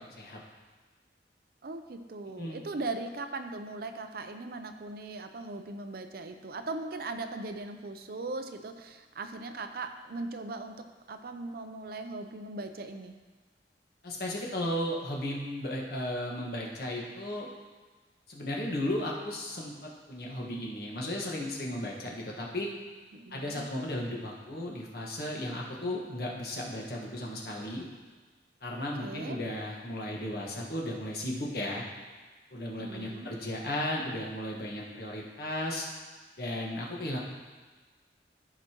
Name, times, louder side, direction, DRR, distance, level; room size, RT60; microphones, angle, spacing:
voice 1, 1.6-13.1 23.1-23.6 25.9-26.0 29.0-29.4 32.7-33.3, right 2 dB, 55° right, 7 dB, 0.5 m, -39 dB
voice 2, 14.0-17.5 18.3-22.7 23.3-27.9 28.6-31.8 32.5-35.8 36.4-37.2, left 1 dB, 60° left, -2 dB, 1.5 m, -35 dB
14.5 x 5.0 x 3.0 m, 1.3 s
head